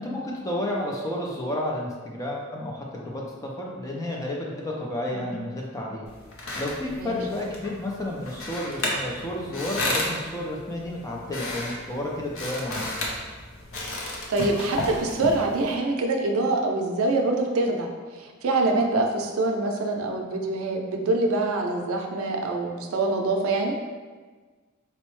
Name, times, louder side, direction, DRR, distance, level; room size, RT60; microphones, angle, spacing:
voice 1, 0.0-6.1 6.5-13.0, left 1 dB, 15° left, -2 dB, 0.4 m, -31 dB
sound 1, 6.1-15.7, left 1 dB, 65° left, 0.6 m, -33 dB
voice 2, 14.3-23.8, right 2 dB, 70° right, 2 dB, 0.4 m, -25 dB
4.3 x 2.0 x 3.0 m, 1.4 s
head